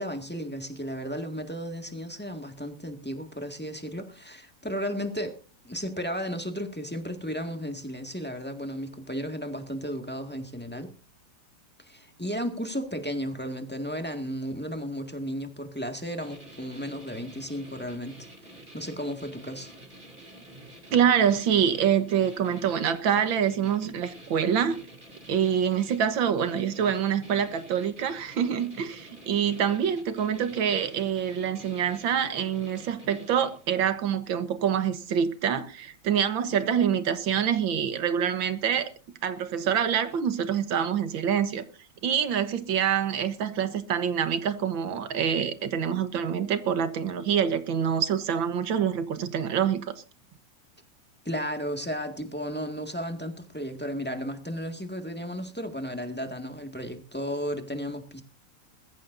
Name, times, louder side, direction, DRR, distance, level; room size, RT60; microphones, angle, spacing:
voice 1, 0.0-5.4 5.6-10.9 11.8-18.3 18.7-19.7 51.3-58.2, equal, 5° left, 1.8 m, -34 dB
sound 1, 16.2-33.9, right 1 dB, 25° right, 3.2 m, -49 dB
voice 2, 20.9-24.8 25.3-38.9 39.2-41.6 42.0-49.9, right 8 dB, 85° right, 2.0 m, -26 dB
21.0 x 14.5 x 2.7 m
omnidirectional pair, 2.0 m